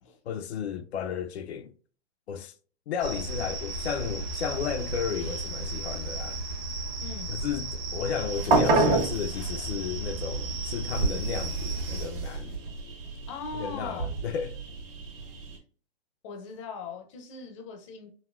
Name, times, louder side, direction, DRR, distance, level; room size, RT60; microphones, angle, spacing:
voice 1, 0.3-1.7 2.3-2.5 2.9-6.4 7.3-12.6 13.5-14.6, left 7 dB, 80° left, 0.5 m, -33 dB
sound 1, 3.0-12.0, right 2 dB, 30° right, 0.8 m, -34 dB
voice 2, 7.0-7.4 13.3-14.1 16.2-18.1, left 4 dB, 30° left, 0.5 m, -40 dB
sound 2, 8.2-15.6, right 3 dB, 55° right, 1.3 m, -29 dB
3.9 x 2.1 x 2.2 m
hypercardioid pair, 150°, 32 cm